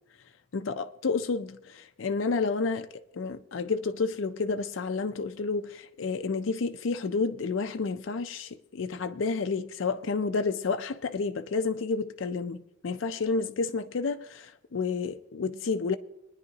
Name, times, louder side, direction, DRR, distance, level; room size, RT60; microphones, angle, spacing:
voice 1, 0.5-16.0, left 4 dB, 80° left, 0.5 m, -30 dB
22.0 x 9.9 x 2.8 m
head